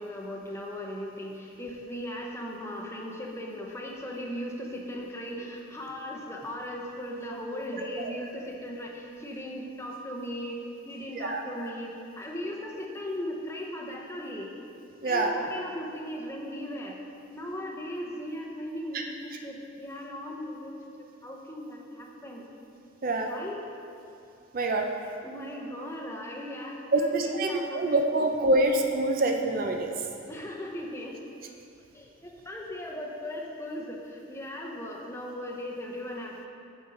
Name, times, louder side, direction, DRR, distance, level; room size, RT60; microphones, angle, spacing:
voice 1, 0.0-10.6 10.8-14.5 15.0-17.0 17.3-22.4 23.1-23.7 25.0-27.9 30.3-31.2 31.9-36.5, equal, 15° left, -1 dB, 0.7 m, -38 dB
voice 2, 24.5-24.9 26.9-29.9, right 2 dB, 45° right, 3 dB, 0.5 m, -26 dB
9.4 x 7.0 x 3.8 m, 2.6 s
head